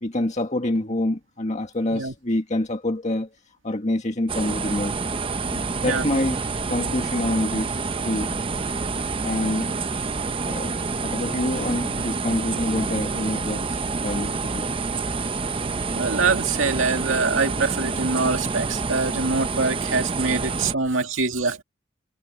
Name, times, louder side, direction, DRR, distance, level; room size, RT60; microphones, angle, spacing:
voice 1, 0.0-3.3 3.6-5.0 5.5-6.4 6.7-8.4 9.2-9.7 10.4-14.7 15.7-15.8, left 1 dB, 35° left, 1.8 m, -27 dB
sound 1, 4.3-20.7, right 4 dB, 25° right, 0.7 m, -28 dB
voice 2, 15.9-21.6, right 4 dB, 85° right, 2.2 m, -24 dB
head